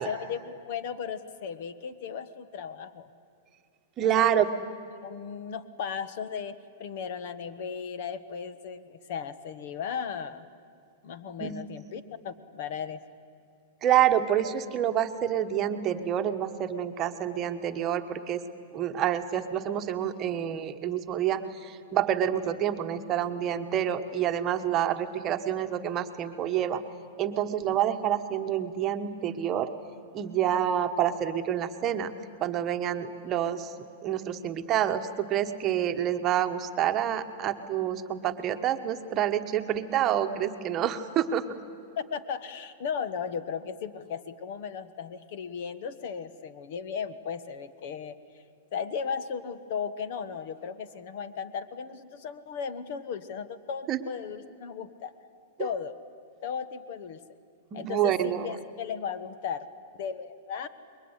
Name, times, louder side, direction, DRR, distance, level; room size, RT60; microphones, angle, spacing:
voice 1, 0.0-3.1 4.1-4.3 5.0-10.5 11.0-13.0 42.0-48.2 48.7-55.1 55.6-56.0 56.4-57.2 57.7-59.7 59.9-60.7, left 7 dB, 55° left, 13 dB, 1.4 m, -36 dB
voice 2, 4.0-4.5 11.4-11.5 13.8-18.4 18.7-26.8 27.2-29.7 30.1-32.1 32.4-33.8 34.0-41.6 53.9-54.0 55.6-55.7 57.7-58.6, right 10 dB, 25° right, 7 dB, 1.3 m, -28 dB
27.0 x 22.0 x 9.8 m, 2.4 s
supercardioid pair, 155°, 0 cm